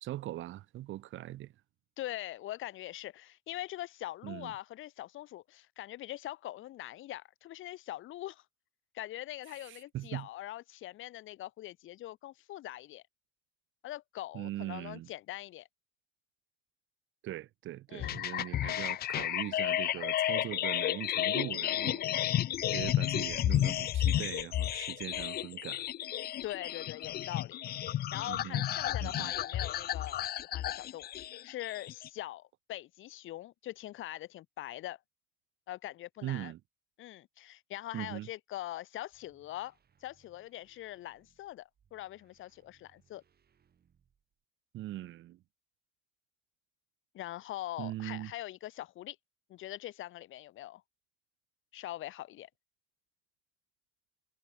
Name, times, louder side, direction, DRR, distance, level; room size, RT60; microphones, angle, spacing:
voice 1, 0.0-1.5 4.2-4.5 9.6-10.3 14.3-15.1 17.2-22.2 22.7-25.8 28.2-28.6 29.0-29.3 36.2-36.6 37.9-38.3 44.7-45.4 47.8-48.3, right 14 dB, 75° right, 0.8 m, -41 dB
voice 2, 2.0-8.4 8.9-13.0 13.8-15.7 17.9-18.2 26.4-27.6 28.1-31.1 31.4-35.0 35.7-36.5 37.0-39.7 40.0-43.2 47.1-49.2 49.5-50.8 51.7-52.5, left 14 dB, 85° left, 1.7 m, -42 dB
sound 1, 18.0-32.1, left 12 dB, 50° left, 0.4 m, -32 dB
sound 2, 39.1-44.4, right 7 dB, 50° right, 5.6 m, -71 dB
cardioid pair, 90°, 20 cm